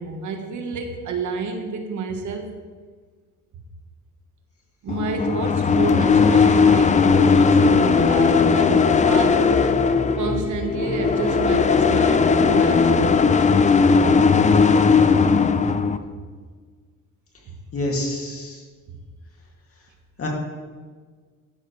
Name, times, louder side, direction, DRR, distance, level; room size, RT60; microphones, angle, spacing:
voice 1, 0.0-2.5 4.8-9.8 10.1-13.4 17.5-17.6, right 4 dB, 60° right, 4 dB, 1.4 m, -29 dB
sound 1, 4.9-16.0, left 5 dB, 25° left, 0.4 m, -17 dB
voice 2, 17.7-18.6 20.2-20.3, left 1 dB, 45° left, -1 dB, 2.4 m, -27 dB
12.5 x 10.0 x 3.2 m, 1.5 s
cardioid pair, 130°, 33 cm